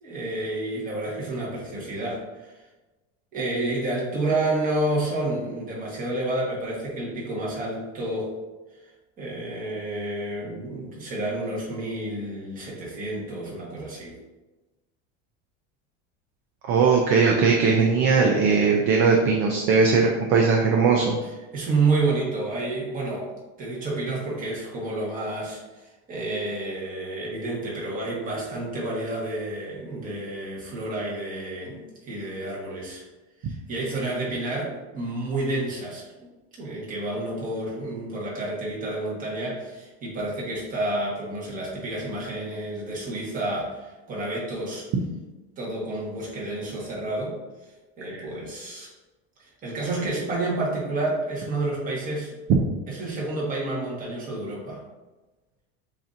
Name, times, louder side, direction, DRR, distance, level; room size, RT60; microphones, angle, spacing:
voice 1, 0.0-2.6 3.3-8.3 8.8-8.9 9.2-14.2 21.2-33.0 33.4-36.0 36.6-44.9 45.6-48.9 49.4-52.4 52.9-54.8, right 2 dB, 25° right, -5 dB, 1.4 m, -30 dB
voice 2, 16.7-21.2 48.1-48.2, right 5 dB, 45° right, 1 dB, 0.5 m, -19 dB
7.0 x 2.8 x 2.5 m, 1.2 s
cardioid pair, 160°, 31 cm